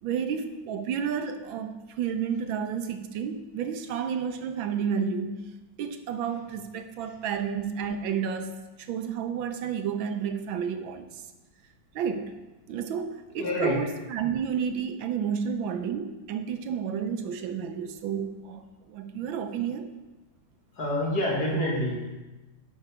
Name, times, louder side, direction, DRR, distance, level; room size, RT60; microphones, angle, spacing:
voice 1, 0.0-5.5 5.8-11.2 11.9-12.4 12.7-19.9, right 7 dB, 80° right, 8 dB, 1.5 m, -31 dB
voice 2, 13.4-13.8 20.8-22.1, left 1 dB, 50° left, -3 dB, 2.5 m, -27 dB
11.0 x 5.7 x 4.8 m, 1.1 s
omnidirectional pair, 2.2 m